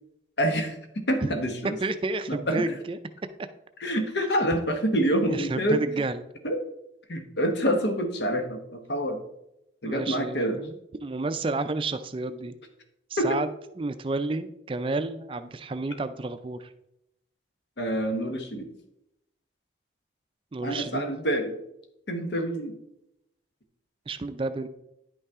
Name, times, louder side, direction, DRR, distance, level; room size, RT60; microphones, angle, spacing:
voice 1, 0.4-1.8 2.3-2.6 3.8-5.8 6.4-6.6 7.1-9.2 9.8-10.6 13.2-13.4 17.8-18.7 20.6-21.6 22.1-22.7, equal, 70° left, 5 dB, 1.2 m, -27 dB
voice 2, 1.8-3.0 5.3-6.2 9.8-12.5 13.1-13.5 13.8-16.7 20.5-21.0 24.1-24.7, right 3 dB, 30° right, 10 dB, 0.4 m, -30 dB
10.0 x 5.5 x 3.6 m, 0.82 s
head